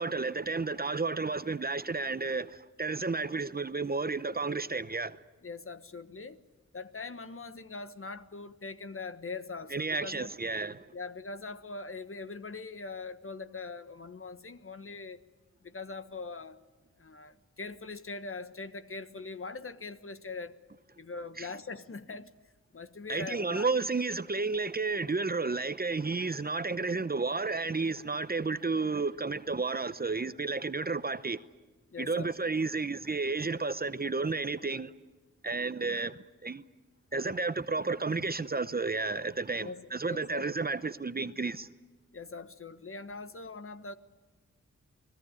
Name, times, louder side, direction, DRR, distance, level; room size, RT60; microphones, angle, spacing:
voice 1, 0.0-2.5 2.8-5.2 9.7-10.7 21.4-21.5 23.1-31.4 32.1-34.9 35.4-36.1 36.4-36.6 37.1-41.7, right 3 dB, 30° right, 0.8 m, -32 dB
voice 2, 5.4-6.4 6.7-10.3 10.9-15.2 15.6-16.6 17.0-20.6 21.0-22.3 22.7-23.7 31.9-32.3 32.6-32.7 39.6-40.5 42.1-43.9, left 4 dB, 45° left, 1.3 m, -42 dB
29.0 x 20.0 x 9.9 m
wide cardioid pair, 110°, 30 cm